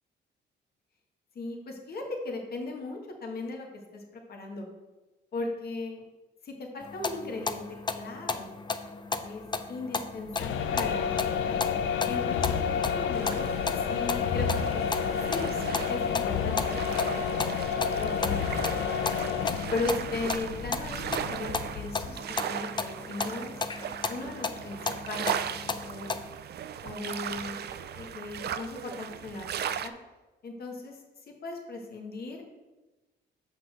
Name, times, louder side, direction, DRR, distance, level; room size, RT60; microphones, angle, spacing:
voice 1, 1.3-3.7 3.9-4.0 4.3-4.7 5.3-6.0 6.4-7.6 7.9-8.5 9.1-11.2 11.5-11.6 12.1-13.5 13.8-14.8 15.3-18.6 18.8-18.9 19.7-23.5 24.1-24.8 25.1-25.4 25.6-26.1 26.8-27.6 27.9-29.5 29.8-29.9 30.4-31.0 31.4-32.5, left 3 dB, 50° left, 1 dB, 1.4 m, -37 dB
sound 1, 6.8-26.3, left 4 dB, 25° left, 0.5 m, -35 dB
sound 2, 10.3-22.2, left 7 dB, 75° left, 0.5 m, -30 dB
sound 3, 13.1-29.9, right 9 dB, 55° right, 0.5 m, -38 dB
6.1 x 4.4 x 6.2 m, 1.1 s
cardioid pair, 90°, 20 cm